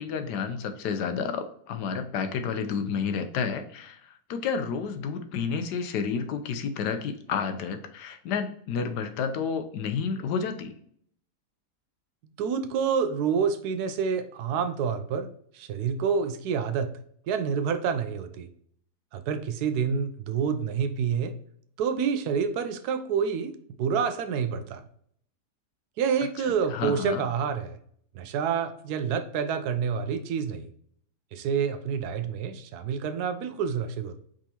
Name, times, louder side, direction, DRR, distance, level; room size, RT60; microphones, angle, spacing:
voice 1, 0.0-10.7 26.4-27.2, left 6 dB, 85° left, 8 dB, 1.3 m, -30 dB
voice 2, 12.2-15.3 15.5-16.9 17.3-18.5 19.1-21.3 21.8-23.5 23.8-24.8 26.0-27.8 28.1-30.7 31.3-34.2, right 6 dB, 75° right, 9 dB, 1.1 m, -28 dB
5.0 x 3.7 x 2.8 m, 0.64 s
omnidirectional pair, 1.7 m